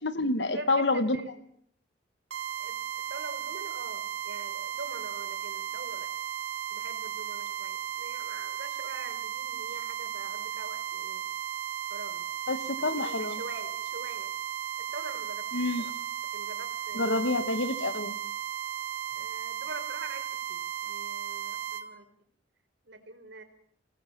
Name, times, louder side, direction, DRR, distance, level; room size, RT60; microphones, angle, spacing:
voice 1, 0.0-1.2 12.5-13.4 15.5-15.8 16.9-18.2, left 2 dB, 65° left, 12 dB, 1.6 m, -28 dB
voice 2, 0.5-1.3 2.6-6.1 6.7-11.2 11.9-12.3 12.6-14.3 14.9-15.5 15.8-15.9 16.3-17.4 19.1-22.1 22.8-23.4, right 2 dB, 65° right, 6 dB, 4.6 m, -44 dB
sound 1, 2.3-21.8, right 11 dB, 85° right, 3.8 m, -35 dB
27.0 x 19.0 x 7.6 m, 0.66 s
head